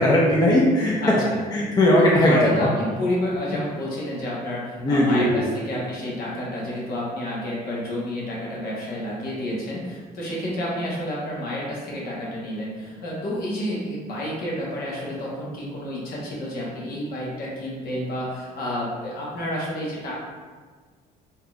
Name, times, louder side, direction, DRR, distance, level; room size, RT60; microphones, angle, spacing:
voice 1, 0.0-0.9 1.5-2.7 4.8-5.4, left 1 dB, 25° left, -3 dB, 0.5 m, -18 dB
voice 2, 1.0-1.4 2.3-20.1, left 1 dB, 65° left, -5 dB, 1.1 m, -30 dB
3.6 x 2.8 x 2.4 m, 1.5 s
cardioid pair, 110°, 17 cm